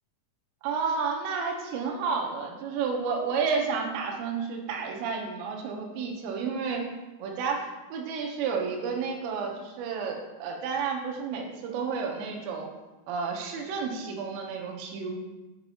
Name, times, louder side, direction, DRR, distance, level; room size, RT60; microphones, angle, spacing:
voice 1, 0.6-6.8 7.2-12.7 13.1-15.1, right 5 dB, 85° right, 1 dB, 3.1 m, -31 dB
7.8 x 5.8 x 2.8 m, 1.1 s
omnidirectional pair, 5.0 m